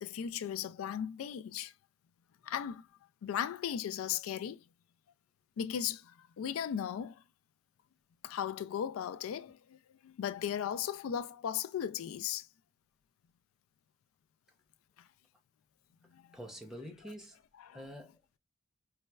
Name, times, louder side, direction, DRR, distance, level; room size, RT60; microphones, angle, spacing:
voice 1, 0.0-1.7 2.4-2.9 3.2-4.6 5.6-7.2 8.2-9.8 10.0-12.5 16.1-16.4 17.6-17.8, left 9 dB, 90° left, 0.3 m, -37 dB
voice 2, 16.3-17.4 17.7-18.4, equal, ahead, 0.6 m, -47 dB
4.1 x 2.2 x 2.2 m
head